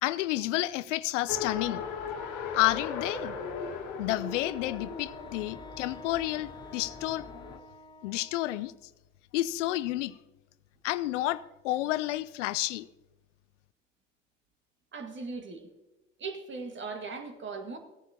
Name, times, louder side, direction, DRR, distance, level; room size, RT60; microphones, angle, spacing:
voice 1, 0.0-1.8 2.5-3.4 4.0-7.3 8.0-8.7 9.3-10.2 10.8-12.9, left 16 dB, 75° left, 17 dB, 0.5 m, -30 dB
Race car auto racing, 1.3-7.6, left 5 dB, 55° left, 1.8 m, -38 dB
Wind instrument woodwind instrument, 4.2-8.8, left 2 dB, 10° left, 1.0 m, -49 dB
voice 2, 14.9-15.7 16.2-17.8, right 4 dB, 30° right, 5 dB, 1.9 m, -38 dB
16.5 x 10.0 x 2.9 m, 1.0 s
hypercardioid pair, 70°, 37 cm